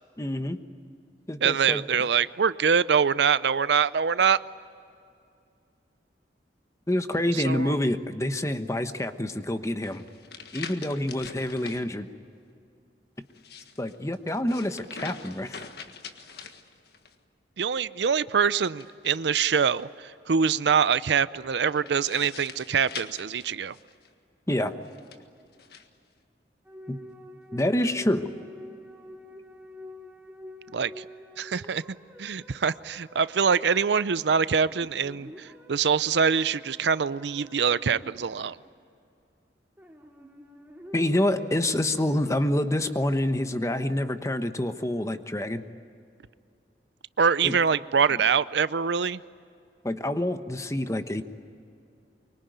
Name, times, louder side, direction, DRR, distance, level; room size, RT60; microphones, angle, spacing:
voice 1, 0.2-0.6 1.3-1.8 6.9-10.0 10.5-12.1 13.8-15.6 24.5-24.7 26.9-27.0 27.5-28.3 40.9-45.6 47.4-47.6 49.8-51.2, left 1 dB, 15° left, 9 dB, 1.1 m, -27 dB
voice 2, 1.4-4.4 7.1-7.7 17.6-23.7 30.7-31.1 31.4-31.8 32.2-38.6 47.2-49.2, right 6 dB, 75° right, 16 dB, 0.6 m, -24 dB
sound 1, 9.8-11.8 13.3-17.2 18.5-19.8 21.7-24.1 24.8-25.9, left 5 dB, 65° left, 1.6 m, -44 dB
sound 2, 26.7-34.3 34.6-38.7 39.8-42.3, equal, 10° right, 2.5 m, -48 dB
24.5 x 24.0 x 9.3 m, 2.4 s
head